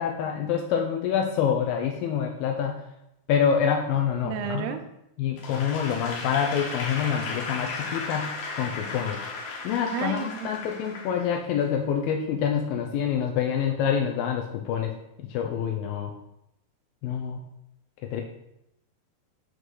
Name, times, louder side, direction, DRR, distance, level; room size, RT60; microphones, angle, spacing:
voice 1, 0.0-2.8 3.3-4.8 5.2-9.2 9.6-14.9 15.3-16.1 17.0-17.4 18.1-18.2, left 8 dB, 90° left, 2 dB, 2.0 m, -26 dB
voice 2, 4.2-4.8 9.9-10.5, right 9 dB, 80° right, 6 dB, 2.8 m, -31 dB
Applause / Crowd, 5.4-11.8, left 4 dB, 70° left, 3.1 m, -35 dB
7.9 x 3.2 x 6.2 m, 0.83 s
omnidirectional pair, 4.8 m